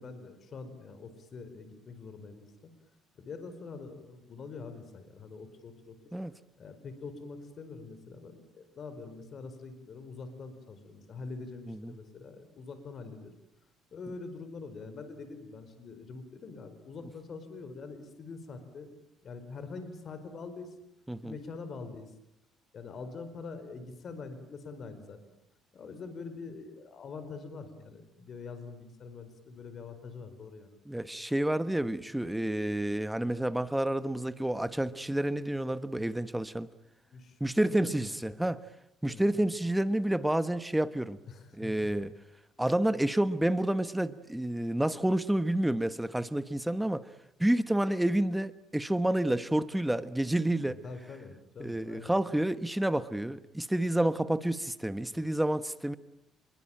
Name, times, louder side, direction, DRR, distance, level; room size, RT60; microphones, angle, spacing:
voice 1, 0.0-2.7 3.2-6.1 6.6-13.3 13.9-18.9 19.2-20.7 21.2-22.1 22.7-25.2 25.7-30.8 37.1-38.4 39.0-39.2 41.2-42.0 50.6-52.1, left 4 dB, 45° left, 10 dB, 4.8 m, -44 dB
voice 2, 30.9-36.7 37.4-38.6 39.0-41.2 41.6-42.1 42.6-47.1 47.4-50.8 51.6-56.0, right 1 dB, 5° right, 13 dB, 1.2 m, -29 dB
26.5 x 23.0 x 9.0 m, 0.81 s
cardioid pair, 115°, 0 cm